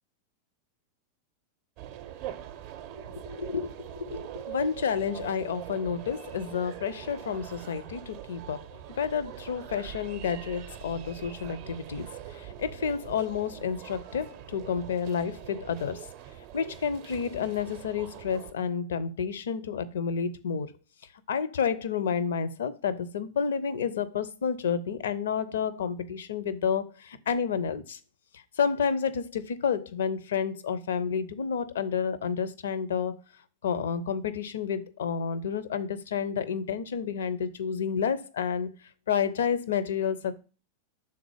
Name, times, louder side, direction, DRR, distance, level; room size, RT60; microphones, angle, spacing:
sound 1, 1.8-18.5, right 11 dB, 45° right, 0.5 m, -43 dB
voice 1, 3.2-8.6 9.0-16.1 16.5-20.7 21.3-28.0 28.6-33.2 33.6-38.7 39.1-40.3, left 6 dB, 60° left, 0.5 m, -30 dB
5.9 x 3.8 x 4.6 m
figure-of-eight pair, 90°, 0 cm